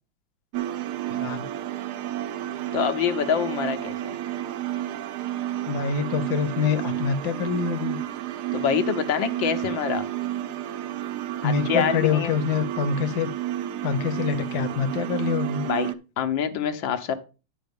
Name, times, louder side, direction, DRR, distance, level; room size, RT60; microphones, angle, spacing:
sound 1, 0.5-15.9, right 13 dB, 70° right, 1.0 m, -31 dB
voice 1, 1.1-1.5 5.7-8.0 11.4-13.3 13.8-15.7, left 6 dB, 65° left, 1.3 m, -25 dB
voice 2, 2.7-4.0 8.5-10.0 11.4-12.4 15.7-15.9 16.2-17.1, left 8 dB, 85° left, 1.7 m, -25 dB
10.5 x 5.0 x 5.2 m
omnidirectional pair, 2.0 m